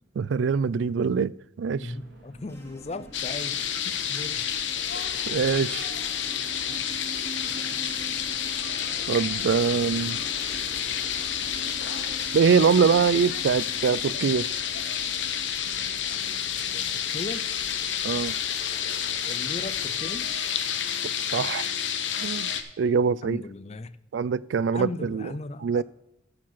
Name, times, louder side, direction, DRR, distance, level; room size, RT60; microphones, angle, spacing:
voice 1, 0.2-1.3 1.6-1.9 5.3-5.9 9.1-10.2 12.3-14.5 18.0-18.3 21.3-21.7 22.2-22.5 22.8-23.4 24.1-25.3 25.6-25.8, right 6 dB, 80° right, 0.3 m, -23 dB
voice 2, 1.8-3.6 3.8-4.5 16.7-16.8 17.1-17.5 19.3-20.3 23.2-23.9 24.7-25.8, left 2 dB, 35° left, 0.5 m, -37 dB
sound 1, 1.8-20.8, equal, 55° right, 4.7 m, -52 dB
sound 2, 2.4-17.9, right 3 dB, 15° left, 1.6 m, -47 dB
sound 3, 3.1-22.6, left 9 dB, 85° left, 1.0 m, -30 dB
14.5 x 5.0 x 5.7 m
head